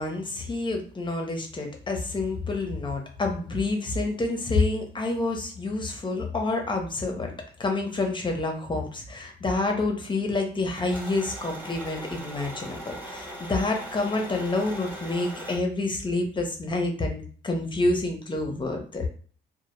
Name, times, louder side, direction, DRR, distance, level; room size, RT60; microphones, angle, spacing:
voice 1, 0.0-7.3 7.6-19.1, left 2 dB, 25° left, 2 dB, 0.6 m, -28 dB
sound 1, 10.8-15.6, equal, 10° right, 0.9 m, -39 dB
2.1 x 2.0 x 3.0 m, 0.43 s
cardioid pair, 90°, 20 cm